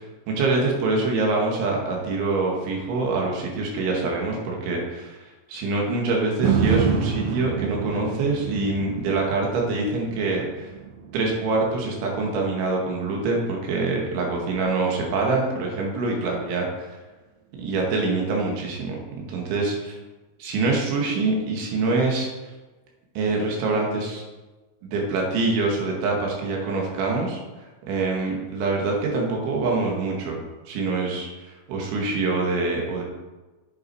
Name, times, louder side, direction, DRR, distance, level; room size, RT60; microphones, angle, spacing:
voice 1, 0.3-10.7 11.1-16.9 17.6-19.0 19.3-19.9 20.4-22.3 23.2-24.3 24.8-27.4 27.9-30.4 30.7-33.0, right 3 dB, 70° right, -1 dB, 4.3 m, -25 dB
sound 1, 6.4-14.6 15.1-15.2, right 6 dB, 90° right, 3.8 m, -29 dB
8.6 x 8.6 x 4.7 m, 1.2 s
omnidirectional pair, 5.7 m